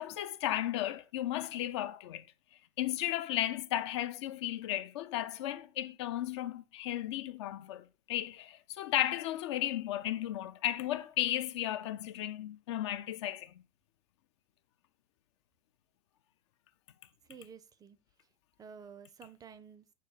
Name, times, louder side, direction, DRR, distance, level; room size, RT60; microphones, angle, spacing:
voice 1, 0.0-2.2 2.8-13.5, left 13 dB, 65° left, 0.4 m, -34 dB
voice 2, 17.3-18.0 18.6-19.9, right 6 dB, 25° right, 0.4 m, -51 dB
6.2 x 2.1 x 3.9 m
hypercardioid pair, 85°, 16 cm